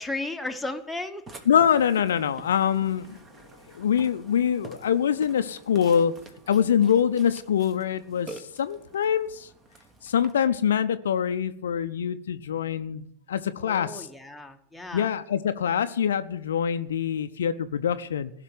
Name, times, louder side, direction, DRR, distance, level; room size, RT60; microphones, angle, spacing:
voice 1, 0.0-1.3 13.6-15.1, left 2 dB, ahead, 3 dB, 1.3 m, -34 dB
Burping eructation, 1.3-10.3, right 3 dB, 20° right, 1.6 m, -48 dB
voice 2, 1.5-3.2 3.7-6.1 6.5-9.5 10.0-14.1 14.9-18.3, left 8 dB, 65° left, 10 dB, 0.6 m, -24 dB
16.5 x 5.9 x 9.2 m, 0.69 s
figure-of-eight pair, 90°, 0 cm